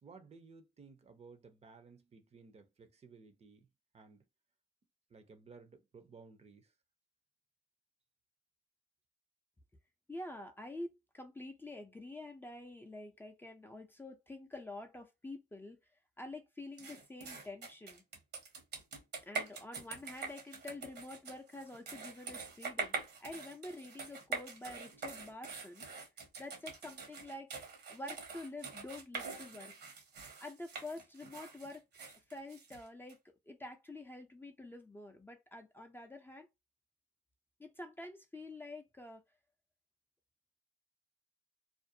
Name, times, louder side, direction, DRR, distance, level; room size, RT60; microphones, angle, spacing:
voice 1, 0.0-3.7 3.9-4.2 5.1-6.7, right 4 dB, 35° right, 0.6 m, -57 dB
voice 2, 10.1-15.8 16.2-18.0 19.2-25.9 26.4-27.5 27.9-29.7 30.4-31.8 32.3-36.5 37.6-39.2, left 2 dB, 10° left, 0.4 m, -48 dB
sound 1, 16.8-33.1, right 4 dB, 70° right, 1.0 m, -44 dB
2.4 x 2.1 x 2.6 m
cardioid pair, 100°, 18 cm